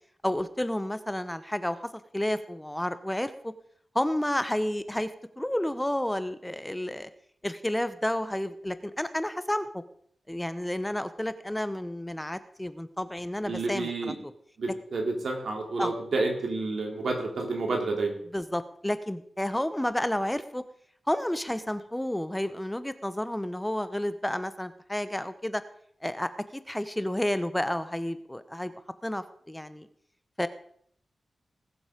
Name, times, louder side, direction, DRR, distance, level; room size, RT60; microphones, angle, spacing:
voice 1, 0.2-1.8 2.1-3.5 3.9-7.1 7.4-9.8 10.3-14.1 15.8-15.9 18.3-20.6 21.1-25.6 26.0-28.7 29.0-29.9 30.4-30.5, left 1 dB, 10° left, 12 dB, 1.0 m, -31 dB
voice 2, 13.5-14.2 14.6-18.1, right 3 dB, 70° right, 2 dB, 3.4 m, -29 dB
20.0 x 7.2 x 5.2 m, 0.65 s
cardioid pair, 50°, 0 cm